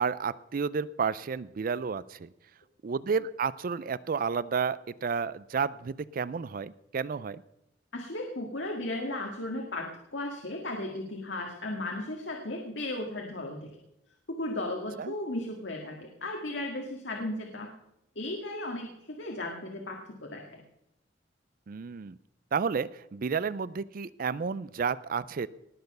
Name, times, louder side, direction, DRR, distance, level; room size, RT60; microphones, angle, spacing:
voice 1, 0.0-2.3 2.8-7.4 15.0-15.1 21.7-22.2 22.5-25.5, right 5 dB, 50° right, 18 dB, 0.4 m, -31 dB
voice 2, 7.9-9.9 10.1-13.7 14.3-17.7 18.2-20.6, left 1 dB, 75° left, 1 dB, 1.9 m, -35 dB
19.5 x 6.9 x 6.6 m, 0.85 s
head